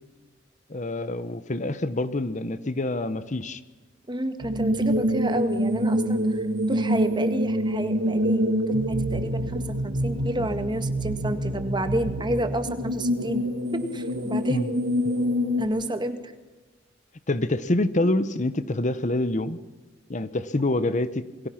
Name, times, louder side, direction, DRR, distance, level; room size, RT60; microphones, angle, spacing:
voice 1, 0.7-3.6 14.5-14.7 17.3-19.6 20.1-21.5, left 2 dB, 40° left, 13 dB, 1.0 m, -26 dB
voice 2, 4.1-13.5 13.7-14.7 15.6-16.3 18.0-18.1, right 1 dB, 25° right, 9 dB, 1.8 m, -30 dB
sound 1, 4.4-15.7, equal, 85° right, 2.7 m, -26 dB
27.5 x 23.0 x 5.9 m, 1.2 s
head